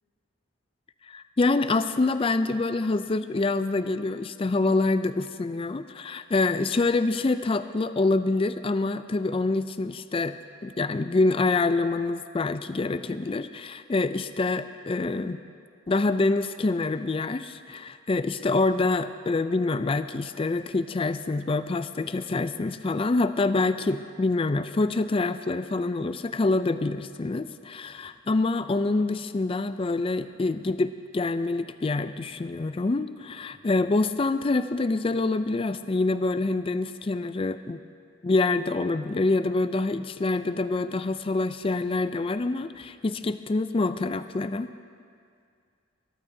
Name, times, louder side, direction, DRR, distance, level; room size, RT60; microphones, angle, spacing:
voice 1, 1.1-10.4 10.6-15.4 15.9-37.8 38.2-44.7, left 3 dB, 25° left, 11 dB, 0.3 m, -26 dB
22.0 x 14.0 x 2.7 m, 2.3 s
head